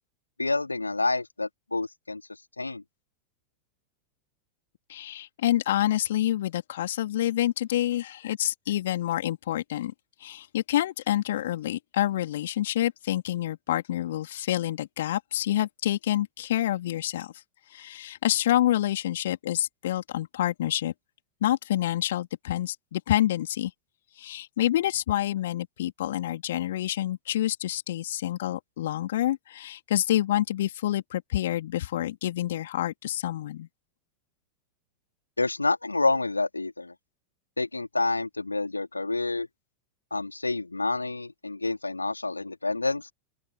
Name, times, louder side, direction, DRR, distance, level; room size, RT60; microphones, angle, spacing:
voice 1, 0.4-2.2 2.6-2.8 35.4-36.9 37.6-39.5 40.1-43.1, left 3 dB, 80° left, 3.7 m, -28 dB
voice 2, 4.9-9.9 10.2-17.3 17.7-20.9 21.4-23.7 24.2-33.7, left 13 dB, 60° left, 3.7 m, -27 dB
open air
figure-of-eight pair, 90°, 0 cm